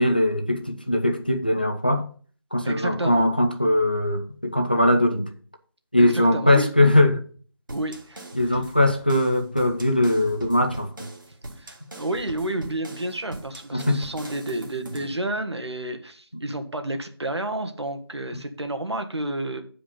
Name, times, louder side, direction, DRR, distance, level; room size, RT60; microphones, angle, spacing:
voice 1, 0.0-2.1 2.5-5.3 5.9-7.2 8.3-11.1 13.7-14.0, left 1 dB, 20° left, 0.5 m, -21 dB
voice 2, 2.6-3.3 6.0-6.7 7.7-8.6 11.6-19.6, right 1 dB, 90° right, 1.7 m, -30 dB
sound 1, 7.7-15.2, right 1 dB, 50° right, 1.7 m, -41 dB
8.4 x 4.9 x 5.5 m
figure-of-eight pair, 175°, 14 cm